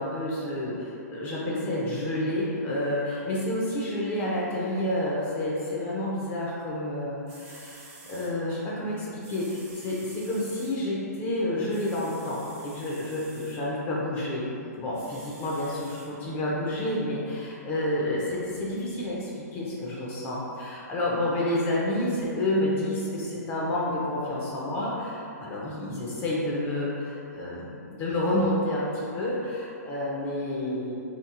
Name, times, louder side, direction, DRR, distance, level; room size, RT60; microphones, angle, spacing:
voice 1, 0.0-14.5 14.8-30.9, left 1 dB, 25° left, -5 dB, 0.4 m, -29 dB
sound 1, 7.0-7.1 7.3-8.3 9.2-10.7 11.7-13.6 14.9-16.1 16.7-16.8, right 3 dB, 25° right, 0.5 m, -50 dB
2.8 x 2.5 x 2.3 m, 2.5 s
hypercardioid pair, 130°, 9 cm